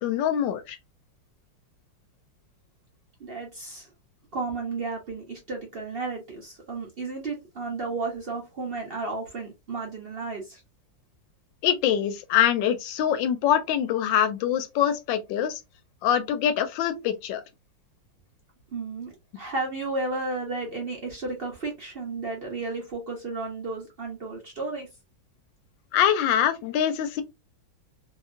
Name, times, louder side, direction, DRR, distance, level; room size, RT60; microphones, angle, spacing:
voice 1, 0.0-0.8 11.6-15.6 16.0-17.4 25.9-27.2, left 9 dB, 75° left, 1.2 m, -24 dB
voice 2, 3.2-3.9 4.3-10.6 18.7-24.9, right 3 dB, 60° right, 0.6 m, -33 dB
2.8 x 2.8 x 2.5 m
omnidirectional pair, 2.1 m